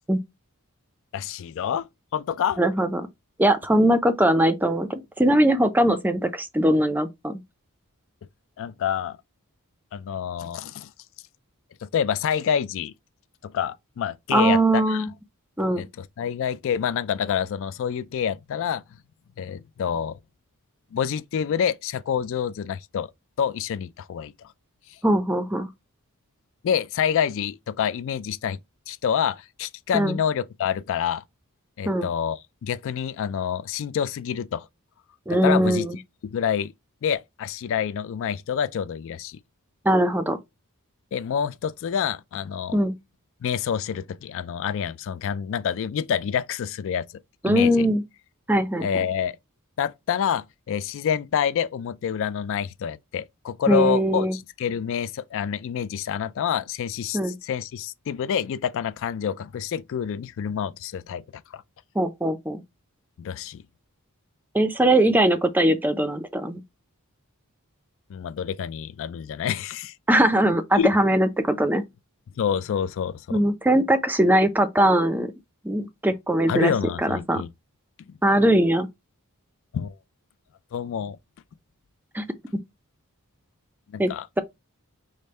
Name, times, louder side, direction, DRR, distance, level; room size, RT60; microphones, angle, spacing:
voice 1, 1.1-1.9 2.1-2.6 8.6-9.2 9.9-10.9 11.8-12.9 13.4-15.0 15.8-18.8 19.4-20.2 20.9-23.1 23.4-24.5 26.6-28.6 28.9-31.2 31.8-34.7 35.3-35.9 36.2-36.7 37.0-39.4 41.1-42.8 43.4-47.1 47.4-47.9 48.8-49.4 49.8-61.2 61.5-61.6 63.2-63.6 68.1-69.9 70.7-70.9 72.4-73.4 76.5-77.5 79.7-79.9 80.7-81.2 83.9-84.3, left 8 dB, 60° left, 0.3 m, -27 dB
voice 2, 2.6-3.1 3.4-7.4 14.3-15.1 15.6-15.9 25.0-25.7 29.9-30.2 31.9-32.1 35.3-36.0 39.8-40.4 42.7-43.0 47.4-48.0 48.5-48.9 53.7-54.4 57.1-57.4 62.0-62.6 64.5-66.6 70.1-71.8 73.3-75.3 75.6-76.7 77.0-77.4 78.2-78.9 82.1-82.2 84.0-84.1, right 1 dB, 10° right, 0.4 m, -21 dB
5.1 x 2.1 x 4.2 m
head